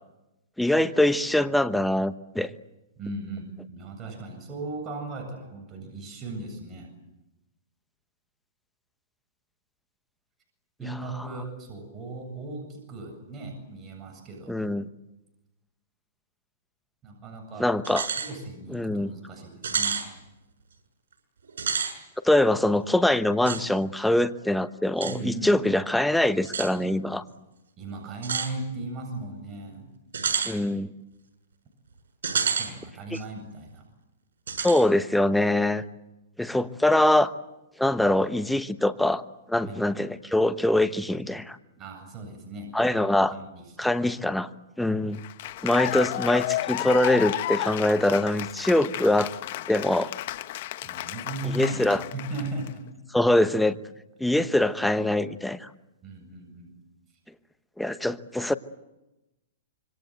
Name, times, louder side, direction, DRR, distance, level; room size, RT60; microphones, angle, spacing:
voice 1, 0.6-2.5 14.5-14.9 17.6-18.1 18.7-19.1 22.2-27.2 30.4-30.9 34.6-35.8 36.4-37.3 37.8-39.2 39.5-41.6 42.7-43.3 43.8-44.5 44.8-45.2 45.6-49.3 49.7-50.1 51.5-52.0 53.1-53.7 54.2-55.7 57.8-58.5, left 1 dB, 5° left, 11 dB, 1.1 m, -23 dB
voice 2, 3.0-6.9 10.8-14.6 17.0-17.8 18.2-20.0 25.0-25.5 27.1-27.3 27.8-29.9 32.3-33.8 39.6-39.8 41.8-43.0 43.3-44.1 50.8-52.9 56.0-56.7, right 2 dB, 25° right, 3 dB, 7.9 m, -37 dB
sound 1, 17.8-18.3 18.7-18.8 19.6-20.1 21.5-21.9 23.4-23.6 25.0-25.2 26.4-26.7 28.2-28.5 30.1-30.5 32.2-32.7 33.1-33.2 34.5-34.8, right 6 dB, 85° right, 6.9 m, -28 dB
Cheering / Applause, 45.1-52.7, left 15 dB, 55° left, 1.2 m, -32 dB
26.5 x 24.5 x 7.8 m, 0.95 s
hypercardioid pair, 140°, 0 cm